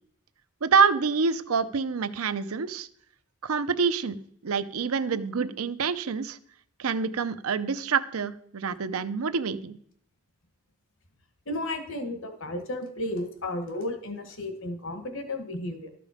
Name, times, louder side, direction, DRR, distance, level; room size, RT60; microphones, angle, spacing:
voice 1, 0.6-2.9 3.4-6.4 6.8-9.8, right 5 dB, 75° right, 13 dB, 0.6 m, -26 dB
voice 2, 11.5-15.9, left 1 dB, 60° left, 8 dB, 1.3 m, -33 dB
12.5 x 6.9 x 4.9 m, 0.65 s
head